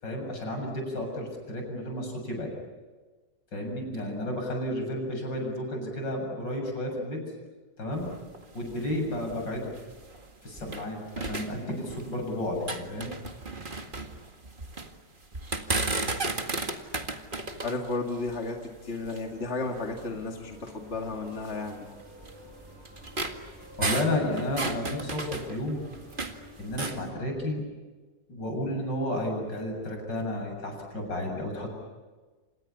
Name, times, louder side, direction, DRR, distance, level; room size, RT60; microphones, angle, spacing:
voice 1, 0.0-2.5 3.5-7.2 7.8-8.1 8.5-9.7 10.4-13.1 23.8-25.8 26.6-27.6 28.3-31.7, left 1 dB, 75° left, 2 dB, 8.0 m, -32 dB
sound 1, 7.9-10.9 11.2-12.2 12.5-14.9 15.3-19.4 20.0-20.1 20.6-20.7 21.5-26.4 26.7-27.0, right 2 dB, 30° right, 2.0 m, -34 dB
voice 2, 17.6-21.9 23.1-23.2, left 3 dB, 40° left, 2 dB, 2.5 m, -33 dB
sound 2, 19.3-27.4, equal, 5° right, 6.6 m, -50 dB
29.0 x 27.5 x 7.1 m, 1.3 s
omnidirectional pair, 1.9 m